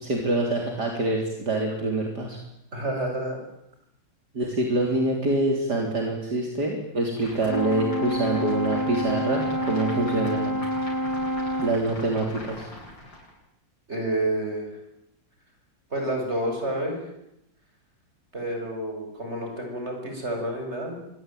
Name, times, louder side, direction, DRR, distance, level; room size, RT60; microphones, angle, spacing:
voice 1, 0.0-2.4 4.3-10.6 11.6-12.7, right 2 dB, 60° right, 1 dB, 4.2 m, -25 dB
voice 2, 2.7-3.4 13.9-14.8 15.9-16.9 18.3-20.9, right 1 dB, 35° right, 3 dB, 7.9 m, -29 dB
sound 1, 7.2-13.3, left 1 dB, 80° left, 8.6 m, -41 dB
Brass instrument, 7.5-11.9, equal, 10° left, 2.6 m, -28 dB
26.0 x 21.5 x 9.3 m, 0.81 s
omnidirectional pair, 2.0 m